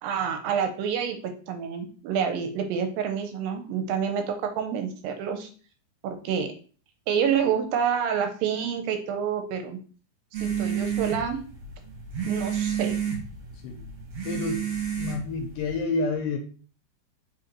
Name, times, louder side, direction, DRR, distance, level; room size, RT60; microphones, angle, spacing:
voice 1, 0.0-1.2 1.5-5.5 6.0-6.5 7.1-9.8 10.3-11.4 12.3-13.0, right 7 dB, 80° right, 6 dB, 2.2 m, -28 dB
sound 1, 10.3-15.8, right 8 dB, 65° right, 1.9 m, -30 dB
voice 2, 14.3-14.6 15.0-16.4, left 3 dB, 80° left, 4 dB, 2.0 m, -28 dB
4.9 x 3.8 x 2.9 m, 0.40 s
omnidirectional pair, 4.2 m